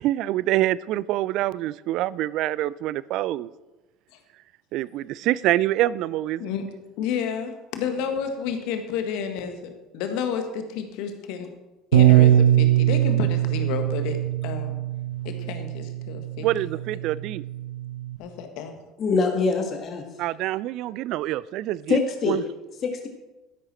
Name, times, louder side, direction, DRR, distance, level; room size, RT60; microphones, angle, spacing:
voice 1, 0.0-3.5 4.7-6.5 16.4-17.4 20.2-22.0 22.2-22.4, right 15 dB, 55° right, 20 dB, 0.3 m, -26 dB
voice 2, 7.0-11.5 11.9-14.8 15.2-16.7 18.2-18.7, left 7 dB, 60° left, 6 dB, 1.6 m, -31 dB
Bass guitar, 11.9-18.2, right 12 dB, 80° right, 0.8 m, -22 dB
voice 3, 19.0-20.0 21.9-22.4 22.8-23.1, left 4 dB, 40° left, 4 dB, 1.6 m, -23 dB
12.5 x 10.5 x 4.3 m, 1.1 s
figure-of-eight pair, 65°, 0 cm